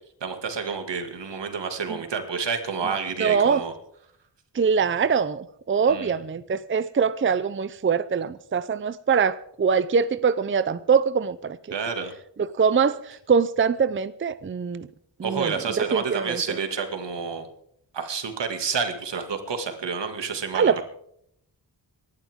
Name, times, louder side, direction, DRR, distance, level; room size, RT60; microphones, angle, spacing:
voice 1, 0.2-3.7 5.9-6.1 11.7-12.1 15.2-17.5 17.9-20.8, right 5 dB, 85° right, 2.3 m, -29 dB
voice 2, 3.2-3.6 4.5-11.6 12.6-14.9 15.2-16.4 20.5-20.8, right 6 dB, 30° right, 0.5 m, -23 dB
26.0 x 11.5 x 3.6 m
wide cardioid pair, 140°, 42 cm